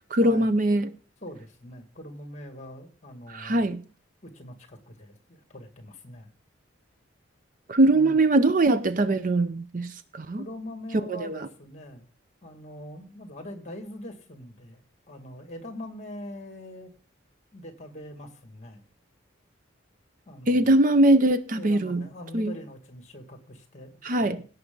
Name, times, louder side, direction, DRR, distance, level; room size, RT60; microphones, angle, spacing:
voice 1, 0.1-0.9 3.3-3.8 7.7-10.4 11.1-11.5 20.5-22.1 22.3-22.5 24.0-24.4, right 2 dB, 40° right, 0.5 m, -22 dB
voice 2, 1.2-3.7 4.2-6.3 7.8-8.2 10.4-12.1 12.4-14.8 15.1-16.9 17.5-18.8 20.3-20.7 21.5-24.5, left 1 dB, 35° left, 2.1 m, -43 dB
17.0 x 6.8 x 3.9 m
head